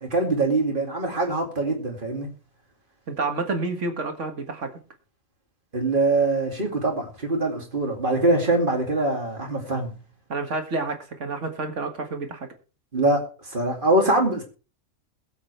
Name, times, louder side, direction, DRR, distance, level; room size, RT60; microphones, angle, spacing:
voice 1, 0.0-2.3 5.7-9.9 12.9-13.2 13.5-14.4, right 2 dB, 40° right, 2.7 m, -23 dB
voice 2, 3.1-4.7 10.3-12.5, right 3 dB, 70° right, 2.0 m, -29 dB
21.0 x 7.6 x 3.3 m
omnidirectional pair, 1.3 m